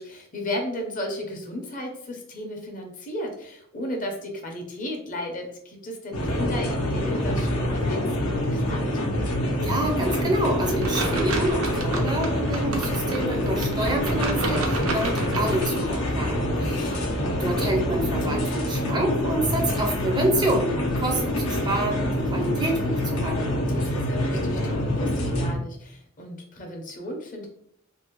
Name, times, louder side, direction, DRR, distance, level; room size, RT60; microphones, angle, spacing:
voice 1, 0.0-8.8 16.6-17.0 23.7-27.5, left 1 dB, 40° left, 2 dB, 0.6 m, -34 dB
sound 1, 6.1-25.5, left 1 dB, 90° left, 0.7 m, -26 dB
voice 2, 9.6-17.0 17.4-23.7, right 1 dB, 20° right, 1 dB, 0.4 m, -28 dB
sound 2, 10.8-15.8, right 2 dB, 90° right, 0.5 m, -30 dB
2.6 x 2.0 x 2.9 m, 0.69 s
head